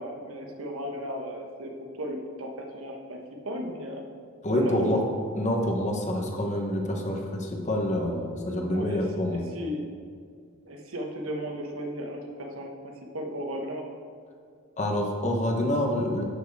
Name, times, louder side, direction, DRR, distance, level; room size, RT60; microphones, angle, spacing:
voice 1, 0.0-1.7 2.0-3.2 3.4-4.0 4.5-4.9 8.7-9.9 10.7-13.9, equal, 80° right, 2 dB, 1.1 m, -35 dB
voice 2, 4.4-5.0 5.3-9.4 14.8-16.2, left 1 dB, 35° left, 2 dB, 1.0 m, -27 dB
11.5 x 4.6 x 4.6 m, 2.2 s
head